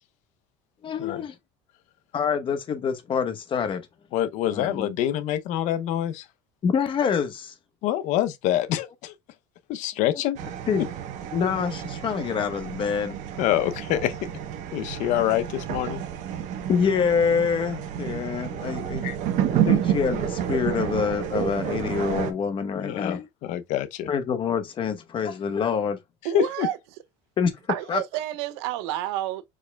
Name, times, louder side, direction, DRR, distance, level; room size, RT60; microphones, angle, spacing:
voice 1, 0.8-1.3 2.1-3.8 4.5-4.9 6.6-7.5 10.7-10.9 11.3-13.2 16.7-19.1 19.5-23.3 24.1-26.0 27.4-27.5 27.9-28.0, left 6 dB, 40° left, 0.9 m, -26 dB
voice 2, 4.1-6.3 7.8-9.1 9.7-10.4 13.4-14.2 14.7-16.0 19.0-19.2 22.7-24.1 26.3-26.7, left 12 dB, 65° left, 0.6 m, -26 dB
sound 1, 10.4-22.3, right 10 dB, 65° right, 0.9 m, -30 dB
voice 3, 26.2-26.8 27.7-29.4, right 13 dB, 90° right, 0.6 m, -29 dB
4.7 x 4.4 x 2.2 m
supercardioid pair, 110°, 14 cm